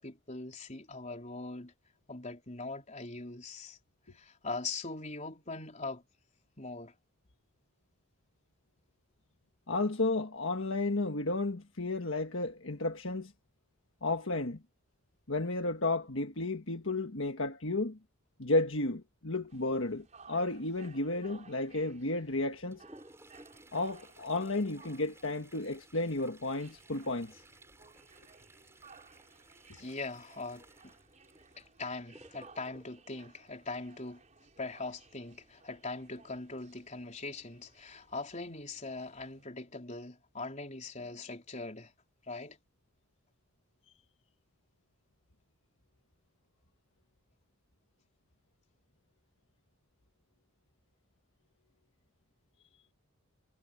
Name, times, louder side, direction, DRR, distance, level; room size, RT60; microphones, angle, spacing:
voice 1, 0.0-1.7 2.1-3.8 4.1-6.0 6.6-6.9 29.7-30.9 31.6-34.2 34.6-41.9 42.3-42.6, left 3 dB, 35° left, 4.1 m, -41 dB
voice 2, 9.7-13.3 14.0-14.6 15.3-18.0 18.4-22.8 23.7-27.4, left 2 dB, 65° left, 1.6 m, -32 dB
sound 1, 19.5-39.4, right 4 dB, 35° right, 5.5 m, -60 dB
Toilet flush, 22.3-34.3 36.2-36.3 36.6-36.7 37.5-37.6 38.2-38.5 38.9-39.1, right 1 dB, 15° right, 8.0 m, -59 dB
head